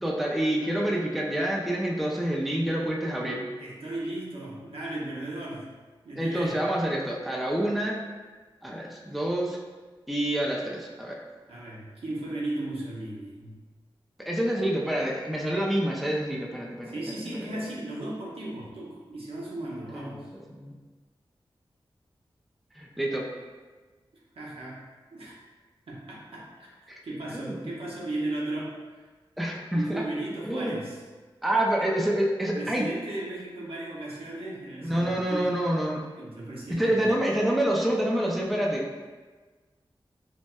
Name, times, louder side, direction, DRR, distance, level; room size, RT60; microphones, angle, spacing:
voice 1, 0.0-3.5 6.2-8.0 8.6-9.6 10.1-11.2 14.2-17.2 17.5-17.6 19.7-20.7 22.7-23.3 27.3-27.7 29.4-30.0 30.5-30.8 31.4-32.9 34.8-36.1 36.7-38.9, right 1 dB, ahead, -2 dB, 0.3 m, -27 dB
voice 2, 3.6-5.7 6.0-6.6 11.5-13.6 16.9-20.3 24.3-24.8 25.1-25.3 25.9-26.7 27.0-29.0 29.7-31.0 32.5-35.5 36.2-37.1, right 2 dB, 80° right, -5 dB, 0.8 m, -36 dB
4.0 x 2.1 x 2.2 m, 1.4 s
wide cardioid pair, 100°, 10 cm